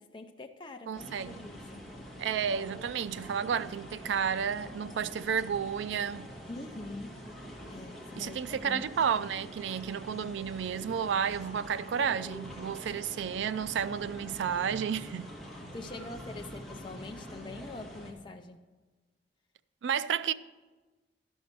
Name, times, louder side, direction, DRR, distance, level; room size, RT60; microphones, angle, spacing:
voice 1, 0.0-1.9 6.5-7.2 7.7-8.8 15.7-18.6, left 2 dB, 25° left, 0.5 m, -44 dB
sound 1, 0.9-18.1, equal, ahead, 1.5 m, -45 dB
voice 2, 0.9-1.4 2.2-6.3 8.2-15.3 19.8-20.3, right 7 dB, 85° right, 0.3 m, -31 dB
12.0 x 5.4 x 6.0 m
head